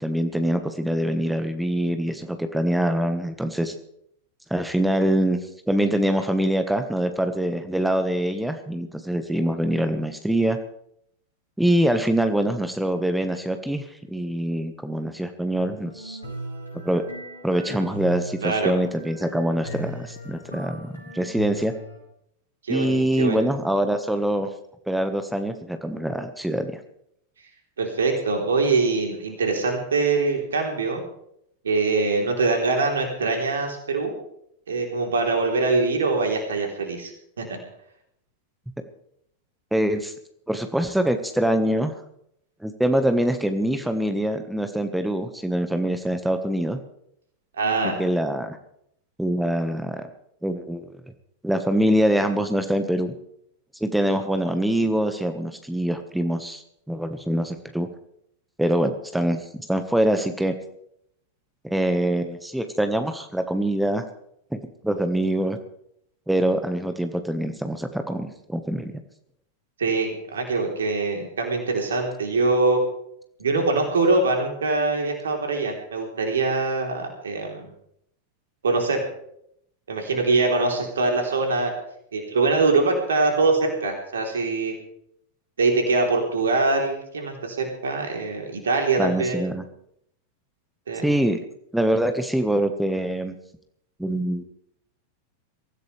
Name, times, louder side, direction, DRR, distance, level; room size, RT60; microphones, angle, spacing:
voice 1, 0.0-3.7 4.5-5.4 5.7-10.6 11.6-16.2 16.8-17.0 17.4-21.7 22.7-24.5 24.9-26.7 39.7-40.1 40.5-41.9 42.6-46.8 48.0-48.6 49.2-50.0 50.4-50.8 51.4-53.1 53.8-57.9 58.6-59.4 59.7-60.5 61.6-64.0 64.5-64.6 64.8-65.6 66.3-69.0 89.0-89.6 91.0-91.4 91.7-93.3 94.0-94.4, right 1 dB, 5° right, 8 dB, 1.4 m, -24 dB
salade de saison, 15.5-22.0, equal, 85° left, 4.9 m, -38 dB
voice 2, 18.4-18.7 22.6-23.4 27.8-31.0 31.6-34.2 34.7-37.1 37.4-37.5 47.6-48.0 69.8-72.8 73.4-77.7 78.6-79.0 79.9-81.7 82.1-84.7 85.6-89.4 90.9-91.0, right 3 dB, 65° right, 2 dB, 3.5 m, -23 dB
23.5 x 15.0 x 3.4 m, 0.73 s
figure-of-eight pair, 90°, 0 cm